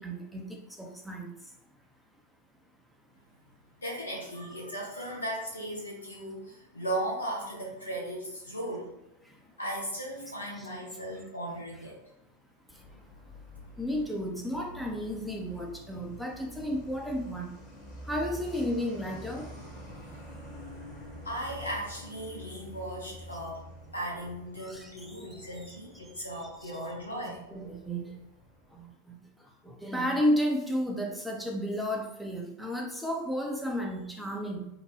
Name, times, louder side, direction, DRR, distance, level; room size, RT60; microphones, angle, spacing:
voice 1, 0.0-1.5 9.2-9.5 10.6-10.7 12.7-13.0 13.8-17.5 18.1-19.5 24.6-25.8 26.4-26.7 27.5-28.2 28.7-34.7, equal, ahead, 0 dB, 0.5 m, -33 dB
voice 2, 3.8-8.9 9.6-12.0 21.2-23.6 23.9-27.5, right 1 dB, 80° left, -3 dB, 0.9 m, -37 dB
Truck, 12.7-28.9, left 1 dB, 35° left, 0.9 m, -47 dB
2.8 x 2.1 x 3.1 m, 0.86 s
figure-of-eight pair, 90°, 0 cm